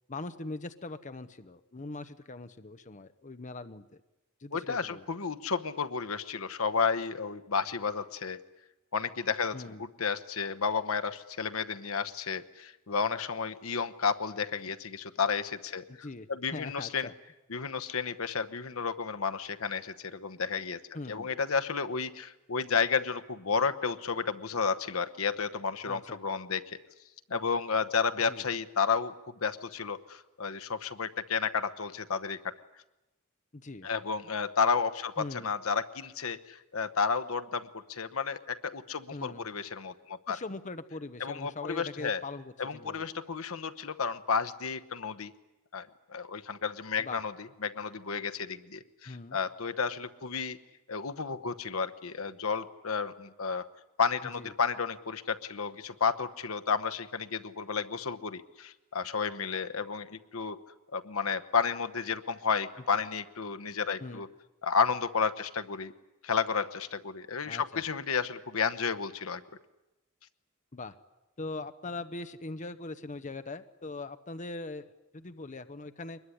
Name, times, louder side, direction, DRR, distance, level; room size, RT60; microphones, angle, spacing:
voice 1, 0.1-4.0 4.4-5.0 9.5-9.8 15.9-17.1 20.9-21.3 25.8-26.2 28.3-28.4 33.5-33.9 35.2-35.5 39.1-39.5 40.3-43.1 47.0-47.2 49.1-49.4 54.4-54.5 62.9-63.1 64.0-64.2 67.4-67.8 70.7-70.9 71.4-76.2, left 3 dB, 35° left, 10 dB, 0.9 m, -41 dB
voice 2, 4.5-8.4 8.9-17.1 17.5-20.8 21.1-26.8 27.3-32.5 33.8-40.4 41.2-42.2 42.6-45.3 45.7-50.6 50.9-53.7 54.0-60.6 60.9-64.3 64.6-65.9 66.2-69.4, left 5 dB, 75° left, 10 dB, 1.0 m, -32 dB
23.5 x 21.0 x 9.9 m, 0.99 s
head